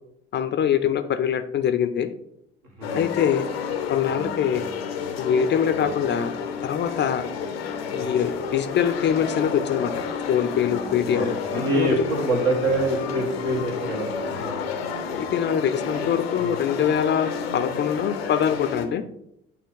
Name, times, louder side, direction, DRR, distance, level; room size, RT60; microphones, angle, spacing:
voice 1, 0.3-2.1 3.0-3.5 3.9-4.6 5.2-6.4 6.6-7.3 7.9-9.9 10.3-12.1 15.1-19.0, left 8 dB, 35° left, 10 dB, 0.5 m, -24 dB
sound 1, 2.8-18.9, left 6 dB, 80° left, 0.6 m, -30 dB
voice 2, 10.8-14.7, right 2 dB, 65° right, 0 dB, 1.6 m, -26 dB
8.5 x 2.8 x 4.0 m, 0.76 s
figure-of-eight pair, 50°, 30 cm